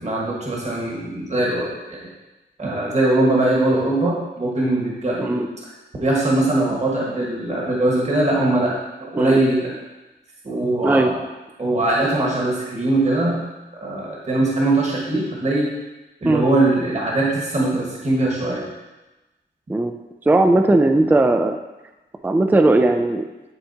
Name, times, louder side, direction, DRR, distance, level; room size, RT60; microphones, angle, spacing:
voice 1, 0.0-2.0 2.6-5.5 6.0-9.7 10.4-11.2 11.6-13.4 13.8-15.7 16.2-18.6, right 2 dB, 40° right, -4 dB, 1.5 m, -21 dB
voice 2, 10.8-11.2 16.3-16.5 19.7-19.9 20.3-21.6 22.2-23.2, right 2 dB, 10° right, 6 dB, 0.4 m, -17 dB
11.5 x 4.2 x 2.8 m, 1.1 s
wide cardioid pair, 105°, 18 cm